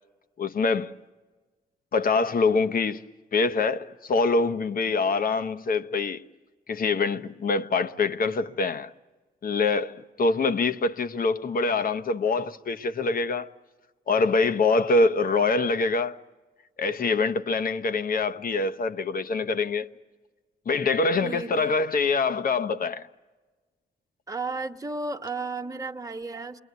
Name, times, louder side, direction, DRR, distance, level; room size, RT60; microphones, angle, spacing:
voice 1, 0.4-0.9 1.9-3.0 3.3-6.2 6.7-8.9 9.4-13.5 14.1-16.2 16.8-19.9 20.7-23.1, left 3 dB, 50° left, 0.9 m, -25 dB
voice 2, 21.1-21.8 24.3-26.6, right 3 dB, 20° right, 1.3 m, -33 dB
28.5 x 22.0 x 9.4 m
cardioid pair, 85°, 18 cm